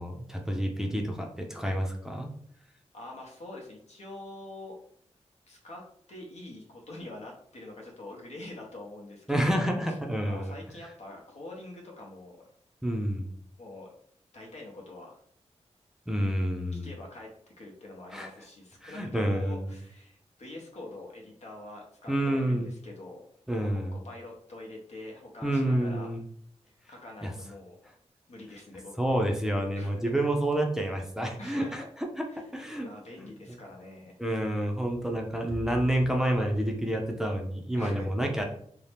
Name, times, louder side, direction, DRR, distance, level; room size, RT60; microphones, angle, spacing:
voice 1, 0.0-2.3 9.3-10.5 12.8-13.3 16.1-16.9 18.1-18.3 18.8-19.7 22.1-22.7 23.5-24.0 25.4-26.2 27.2-27.3 29.0-31.8 32.2-32.3 32.5-32.9 33.2-33.3 34.2-38.4, right 1 dB, 5° right, 1 dB, 0.5 m, -29 dB
voice 2, 2.9-4.8 5.5-10.0 10.2-12.5 13.6-13.9 14.3-15.2 16.7-17.3 17.6-23.2 23.6-26.1 26.6-27.8 28.3-29.3 29.7-30.1 31.4-31.7 32.2-32.5 32.8-34.2 37.8-38.1, left 2 dB, 70° left, -1 dB, 0.8 m, -45 dB
2.7 x 2.1 x 3.3 m, 0.65 s
wide cardioid pair, 75°, 12 cm